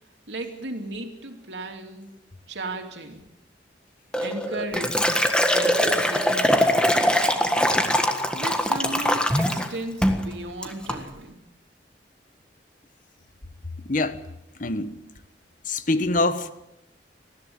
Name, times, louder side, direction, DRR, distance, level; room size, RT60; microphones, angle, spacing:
voice 1, 0.3-2.1 2.5-3.3 4.2-7.1 8.3-11.4, right 2 dB, 75° right, 2.9 m, -35 dB
Liquid, 4.1-9.7 10.0-10.3 10.6-11.0, equal, 5° left, 1.6 m, -22 dB
voice 2, 13.8-14.2 14.6-14.9 15.6-16.5, left 2 dB, 45° left, 1.2 m, -24 dB
20.5 x 15.0 x 8.8 m
head